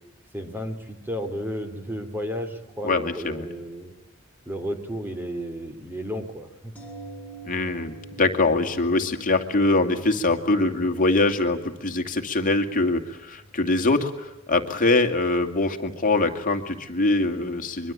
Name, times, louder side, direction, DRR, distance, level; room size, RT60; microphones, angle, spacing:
voice 1, 0.3-3.9 4.5-6.7, equal, 10° right, 6 dB, 3.4 m, -33 dB
voice 2, 2.8-3.5 7.4-17.9, left 2 dB, 40° left, 5 dB, 2.5 m, -23 dB
sound 1, 6.8-16.6 16.9-17.0, right 2 dB, 10° left, 5.7 m, -47 dB
24.5 x 23.5 x 8.7 m, 0.97 s
head